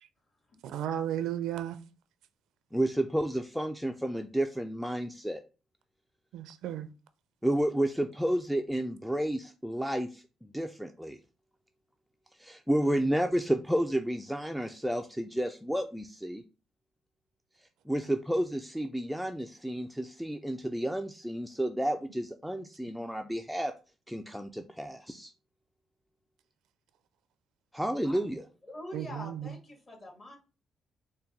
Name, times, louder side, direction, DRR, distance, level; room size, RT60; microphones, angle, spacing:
voice 1, 0.6-1.8 6.3-6.9 28.9-29.5, right 11 dB, 85° right, 0.4 m, -34 dB
voice 2, 2.7-5.4 7.4-11.2 12.3-16.4 17.9-23.7 24.1-25.3 27.7-28.4, right 1 dB, ahead, 0.3 m, -31 dB
voice 3, 28.0-30.4, left 1 dB, 35° left, 1.7 m, -45 dB
4.1 x 2.2 x 3.8 m
cardioid pair, 90°, 0 cm